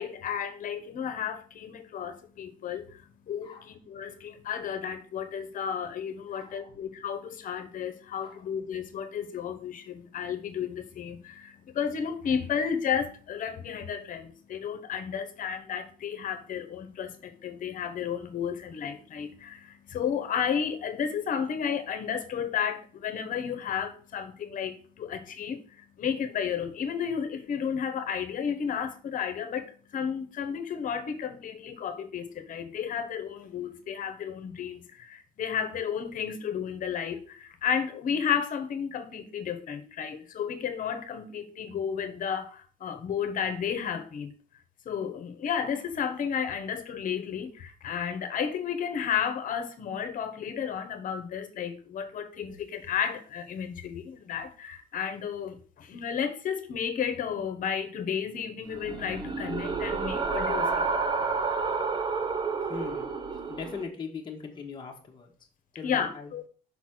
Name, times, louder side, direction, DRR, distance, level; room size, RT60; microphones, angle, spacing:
voice 1, 0.0-44.3 44.8-60.9 65.8-66.4, left 7 dB, 50° left, 1.2 m, -32 dB
voice 2, 6.3-6.7 8.2-8.4 62.6-63.1 63.5-65.3 65.8-66.3, left 5 dB, 25° left, 1.3 m, -40 dB
sound 1, 58.7-63.8, right 4 dB, 25° right, 0.9 m, -30 dB
5.6 x 4.1 x 6.2 m
cardioid pair, 110°, 17 cm